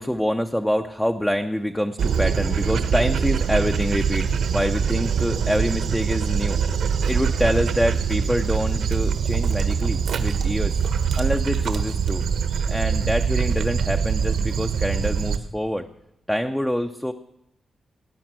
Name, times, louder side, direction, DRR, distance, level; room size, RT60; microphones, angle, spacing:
voice 1, 0.0-6.6 7.1-10.8 11.2-12.2 12.7-15.9 16.3-17.1, equal, 5° left, 5 dB, 0.6 m, -25 dB
Dog, 2.0-15.4, right 6 dB, 75° right, 1.3 m, -23 dB
18.5 x 9.7 x 7.5 m, 0.88 s
wide cardioid pair, 155°, 0 cm